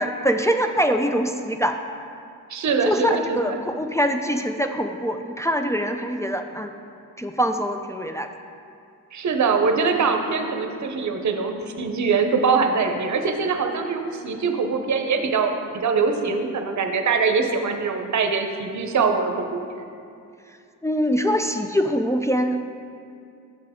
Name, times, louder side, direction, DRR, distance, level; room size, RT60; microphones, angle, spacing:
voice 1, 0.0-1.8 2.8-6.7 7.2-8.3 20.8-22.6, equal, 10° left, 5 dB, 0.3 m, -23 dB
voice 2, 2.5-3.6 9.1-19.6, right 5 dB, 55° right, 5 dB, 0.7 m, -23 dB
6.6 x 6.2 x 3.6 m, 2.5 s
cardioid pair, 55°, 34 cm